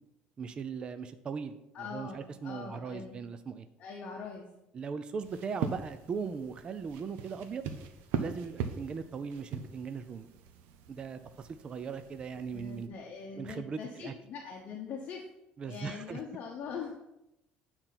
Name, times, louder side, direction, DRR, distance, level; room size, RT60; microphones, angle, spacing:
voice 1, 0.4-3.7 4.7-7.6 8.2-10.3 10.9-12.9 13.4-14.1 15.6-16.2, right 5 dB, 30° right, 10 dB, 0.5 m, -39 dB
voice 2, 1.7-3.2 3.8-4.5 12.5-15.3 15.6-17.0, left 5 dB, 45° left, 0 dB, 1.0 m, -42 dB
sound 1, 5.2-12.9, right 6 dB, 75° right, 0.9 m, -41 dB
8.9 x 4.4 x 5.9 m, 0.90 s
cardioid pair, 145°, 3 cm